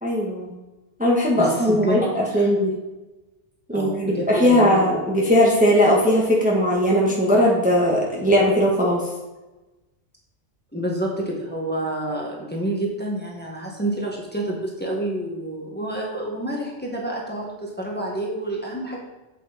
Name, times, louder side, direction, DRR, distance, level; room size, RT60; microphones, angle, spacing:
voice 1, 0.0-0.5 1.0-2.7 3.7-9.0, equal, 5° right, -4 dB, 1.6 m, -19 dB
voice 2, 1.4-2.0 2.3-2.5 3.7-4.8 10.7-19.0, right 1 dB, 10° left, -3 dB, 1.7 m, -28 dB
8.1 x 7.9 x 4.2 m, 1.1 s
omnidirectional pair, 1.2 m